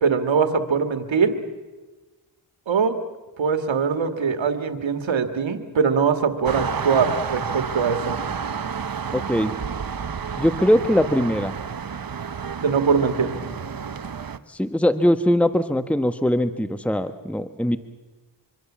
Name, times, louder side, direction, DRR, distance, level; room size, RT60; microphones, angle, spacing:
voice 1, 0.0-1.4 2.7-3.0 3.4-8.2 12.6-13.4, right 6 dB, 85° right, 8 dB, 1.9 m, -22 dB
sound 1, 6.4-14.4, right 6 dB, 50° right, 1.1 m, -30 dB
voice 2, 9.1-9.5 10.4-11.5 14.5-17.8, equal, 5° left, 10 dB, 1.3 m, -21 dB
25.0 x 24.0 x 7.4 m, 1.2 s
cardioid pair, 45°, 45 cm